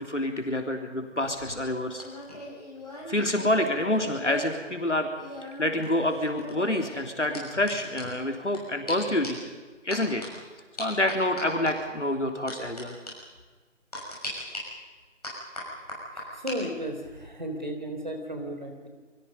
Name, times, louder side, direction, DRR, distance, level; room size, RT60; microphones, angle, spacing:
voice 1, 0.0-2.0 3.1-5.1 5.4-9.4 9.8-10.3 10.8-13.0, left 1 dB, 65° left, 4 dB, 3.5 m, -27 dB
sound 1, 1.2-4.6 4.9-8.6 8.9-9.0 9.2-9.5 9.9-10.3 10.8-11.7 12.5-12.8 13.1-13.2 13.9-14.6 15.2-16.6 16.9-17.2, left 1 dB, 30° left, 6.2 m, -40 dB
voice 2, 16.1-18.9, equal, 35° right, 4 dB, 3.8 m, -34 dB
29.5 x 22.5 x 5.4 m, 1.4 s
figure-of-eight pair, 175°, 39 cm